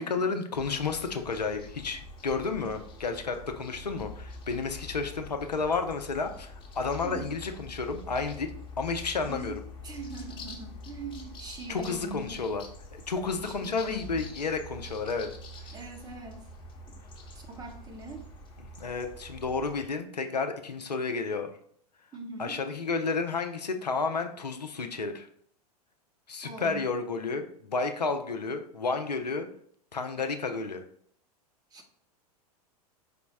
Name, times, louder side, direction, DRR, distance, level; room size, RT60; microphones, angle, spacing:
voice 1, 0.0-9.6 11.7-12.6 13.1-15.3 15.6-15.7 18.8-21.5 22.4-25.3 26.3-29.5 29.9-30.8, left 4 dB, 90° left, 6 dB, 0.6 m, -31 dB
sound 1, 0.5-19.9, left 2 dB, 25° left, 0.9 m, -45 dB
voice 2, 9.8-12.4 13.4-14.3 15.7-16.4 16.9-17.0 17.3-18.2 22.1-22.6 26.4-26.9 31.7-31.8, right 3 dB, 20° right, 4 dB, 0.8 m, -42 dB
5.0 x 2.0 x 4.6 m, 0.62 s
figure-of-eight pair, 95°, 20 cm